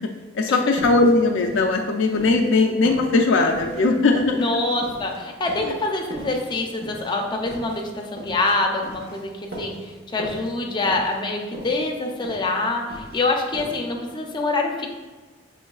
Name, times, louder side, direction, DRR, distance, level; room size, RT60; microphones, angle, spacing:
voice 1, 0.3-4.5 5.6-5.7, left 3 dB, 75° left, 2 dB, 0.4 m, -19 dB
sound 1, 0.8-2.6 2.8-5.2 5.5-5.8 6.1-8.5 8.8-9.9 10.2-10.5 10.8-11.3 11.5-12.5 12.8-13.3 13.5-13.7, equal, 55° right, 1.1 m, -37 dB
voice 2, 4.4-9.3 9.6-9.7 10.1-14.9, left 2 dB, 25° left, 1 dB, 0.6 m, -25 dB
6.3 x 3.1 x 2.3 m, 1.4 s
head